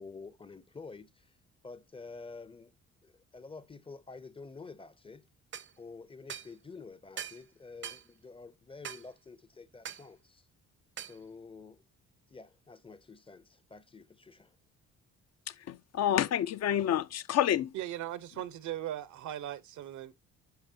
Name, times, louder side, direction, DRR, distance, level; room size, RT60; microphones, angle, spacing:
voice 1, 0.0-1.3 1.6-2.7 3.0-5.2 5.8-10.5 11.0-11.8 12.3-14.6, left 4 dB, 20° left, 0.6 m, -49 dB
sound 1, 5.5-5.7 6.3-6.5 7.2-7.4 7.8-8.0 8.8-9.1 9.9-10.1 11.0-11.2, right 8 dB, 40° right, 0.6 m, -41 dB
voice 2, 15.5-17.7, left 10 dB, 60° left, 0.5 m, -29 dB
voice 3, 17.7-20.1, right 12 dB, 75° right, 0.8 m, -38 dB
10.5 x 5.6 x 2.7 m
cardioid pair, 90°, 30 cm